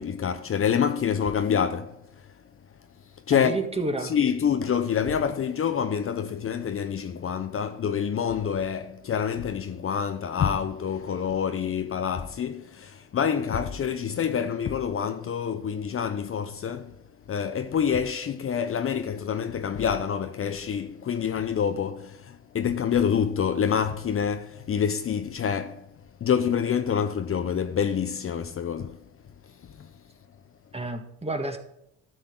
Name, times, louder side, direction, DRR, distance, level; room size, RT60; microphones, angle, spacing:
voice 1, 0.0-2.0 3.3-3.5 4.0-17.0 17.3-25.8 26.2-29.0 29.6-29.9, left 7 dB, 40° left, 0.8 m, -27 dB
voice 2, 3.3-4.2 30.7-31.6, right 2 dB, 15° right, 1.7 m, -30 dB
12.0 x 6.8 x 3.9 m
supercardioid pair, 75°, 35 cm